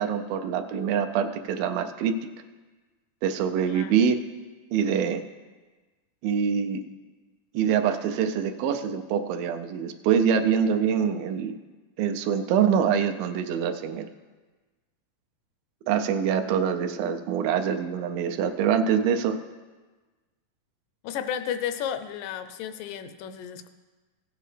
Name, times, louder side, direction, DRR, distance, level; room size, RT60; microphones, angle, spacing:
voice 1, 0.0-2.2 3.2-4.3 4.7-5.2 6.2-6.8 7.5-11.5 12.0-14.1 15.9-19.4, right 7 dB, 85° right, 6 dB, 2.4 m, -25 dB
voice 2, 21.0-23.7, left 9 dB, 80° left, 10 dB, 2.1 m, -33 dB
16.0 x 7.7 x 3.3 m, 1.3 s
omnidirectional pair, 4.1 m